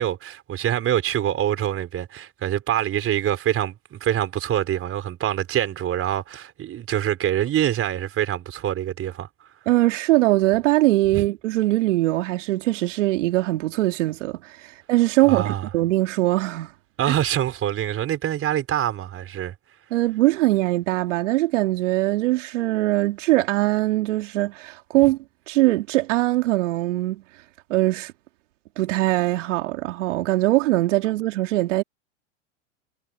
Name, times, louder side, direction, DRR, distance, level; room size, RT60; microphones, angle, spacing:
voice 1, 0.0-9.3 11.1-11.2 15.3-15.7 17.0-19.5, right 11 dB, 35° right, 4.5 m, -25 dB
voice 2, 9.7-16.7 17.1-17.2 19.9-25.2 25.5-27.2 27.7-28.1 28.8-31.8, right 17 dB, 70° right, 2.6 m, -21 dB
hypercardioid pair, 100°, 38 cm